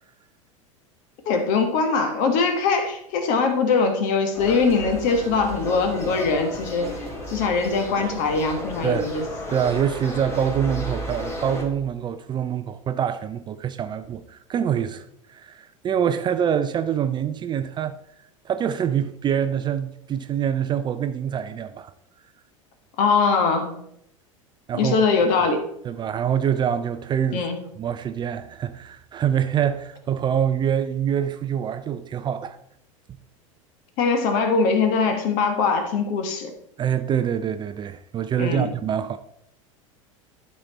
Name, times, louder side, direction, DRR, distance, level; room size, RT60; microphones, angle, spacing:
voice 1, 1.3-6.9 7.3-9.2 23.0-23.8 24.7-25.6 27.3-27.6 34.0-36.5 38.4-38.7, left 4 dB, 50° left, 1.5 m, -22 dB
sound 1, 4.3-11.6, equal, 15° left, 2.3 m, -33 dB
voice 2, 9.5-18.0 18.4-21.9 24.7-25.1 25.8-27.4 27.8-32.6 36.8-39.2, right 9 dB, 25° right, 0.5 m, -25 dB
11.5 x 4.3 x 4.1 m
figure-of-eight pair, 80°, 17 cm